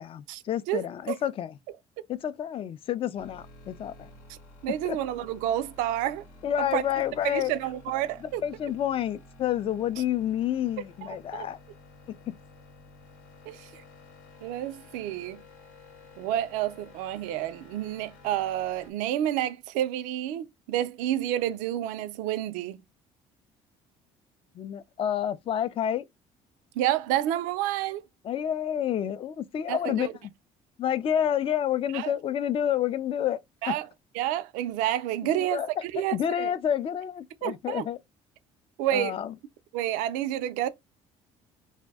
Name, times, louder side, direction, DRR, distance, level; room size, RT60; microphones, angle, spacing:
voice 1, 0.0-1.5 2.1-4.1 4.8-5.0 6.4-7.5 8.4-11.6 12.1-12.3 24.6-26.0 28.2-30.1 30.8-33.4 33.7-33.8 35.2-35.7 36.0-38.0 38.9-39.3, left 10 dB, 45° left, 0.4 m, -29 dB
voice 2, 0.7-1.2 4.3-4.4 4.6-6.2 6.7-6.8 7.2-8.4 11.0-11.5 13.5-13.8 14.4-15.4 16.2-22.8 26.8-28.0 29.7-30.1 31.9-32.1 33.6-33.9 34.1-36.5 37.4-37.8 38.8-39.2 39.7-40.7, right 12 dB, 85° right, 0.4 m, -29 dB
sound 1, 3.2-18.9, left 2 dB, 85° left, 0.9 m, -52 dB
2.6 x 2.0 x 3.4 m
supercardioid pair, 90°, 13 cm